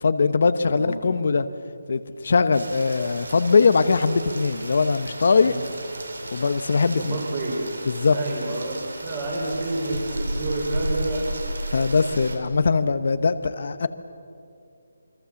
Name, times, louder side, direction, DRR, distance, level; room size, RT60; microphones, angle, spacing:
voice 1, 0.0-1.5 1.9-5.5 6.3-7.2 7.9-8.2 11.7-13.9, left 4 dB, 45° left, 12 dB, 1.0 m, -21 dB
Rain, 2.5-12.4, right 1 dB, 85° right, 4.9 m, -34 dB
voice 2, 7.0-7.6 8.1-11.2, right 2 dB, 20° right, -3 dB, 3.7 m, -29 dB
27.0 x 24.5 x 7.2 m, 2.5 s
hypercardioid pair, 175°, 0 cm